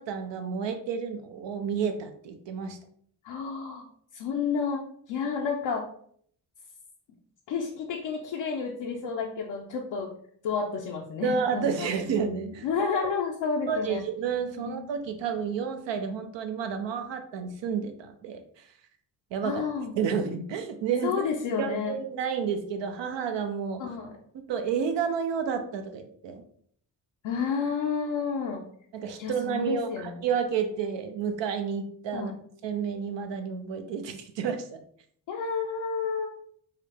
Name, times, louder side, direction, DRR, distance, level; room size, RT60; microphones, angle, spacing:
voice 1, 0.0-2.8 11.2-12.7 13.7-18.7 19.3-19.6 20.0-21.2 21.6-23.8 24.5-26.4 28.9-32.3 32.6-34.8, right 6 dB, 80° right, 6 dB, 0.7 m, -30 dB
voice 2, 3.2-3.9 4.1-5.9 7.5-10.1 10.4-11.9 12.6-14.0 14.7-14.9 19.4-20.0 21.0-21.9 23.8-24.1 27.2-28.6 29.1-30.3 32.1-32.3 35.3-36.3, left 5 dB, 85° left, -1 dB, 0.7 m, -30 dB
4.7 x 2.4 x 3.4 m, 0.62 s
cardioid pair, 60°, 43 cm